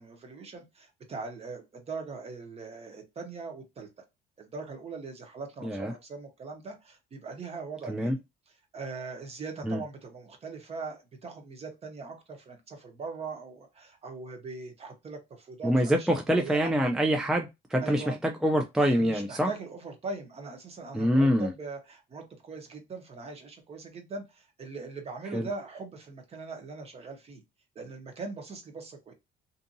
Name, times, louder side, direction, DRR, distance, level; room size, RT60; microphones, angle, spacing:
voice 1, 0.0-3.9 4.4-8.2 8.7-16.7 17.8-18.2 18.8-27.4 27.7-29.1, right 4 dB, 35° right, 0.9 m, -41 dB
voice 2, 15.6-19.5 20.9-21.5 25.3-25.5, equal, 5° right, 0.3 m, -25 dB
2.7 x 2.5 x 2.6 m
cardioid pair, 110°, 17 cm